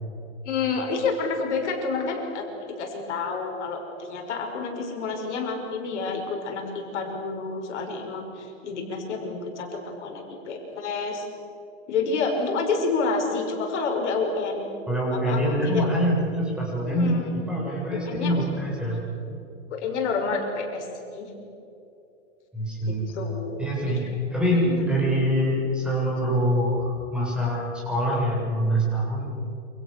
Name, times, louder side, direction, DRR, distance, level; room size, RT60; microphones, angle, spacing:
voice 1, 0.4-2.4 2.8-11.3 11.9-14.7 15.1-15.8 16.9-17.4 17.9-18.5 19.7-20.9 21.1-21.3 22.9-24.0 24.6-24.9, left 4 dB, 60° left, 2 dB, 5.8 m, -29 dB
voice 2, 14.9-17.2 17.5-19.0 22.5-23.2 23.6-29.3, equal, ahead, -4 dB, 6.9 m, -25 dB
28.5 x 26.5 x 6.8 m, 2.8 s
hypercardioid pair, 150°, 38 cm